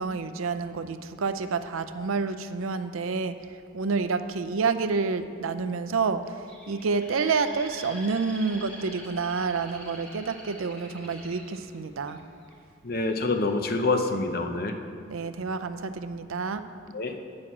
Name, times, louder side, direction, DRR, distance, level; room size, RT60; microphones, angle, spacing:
voice 1, 0.0-12.2 15.1-16.6, right 4 dB, 80° right, 11 dB, 0.5 m, -29 dB
Bird, 6.5-12.5 13.1-13.5, equal, 5° left, 1.6 m, -45 dB
voice 2, 12.8-14.8 16.9-17.2, left 3 dB, 45° left, 5 dB, 0.7 m, -26 dB
8.8 x 6.3 x 7.1 m, 2.3 s
head